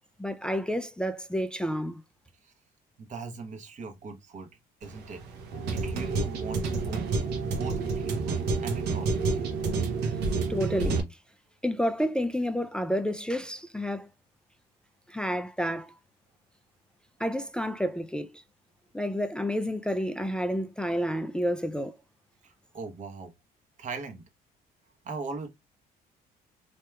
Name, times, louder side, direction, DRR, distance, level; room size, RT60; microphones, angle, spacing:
voice 1, 0.2-2.0 10.5-11.0 11.6-14.1 15.1-15.9 17.2-18.4 18.9-22.0, equal, 5° left, 0.3 m, -30 dB
voice 2, 3.0-4.5 4.8-5.2 5.7-7.1 7.4-9.4 22.4-23.3 23.8-24.2 25.0-25.5, right 4 dB, 45° right, 1.1 m, -40 dB
sound 1, 4.8-11.0, right 4 dB, 80° right, 1.0 m, -29 dB
3.3 x 2.7 x 2.3 m
cardioid pair, 110°, 17 cm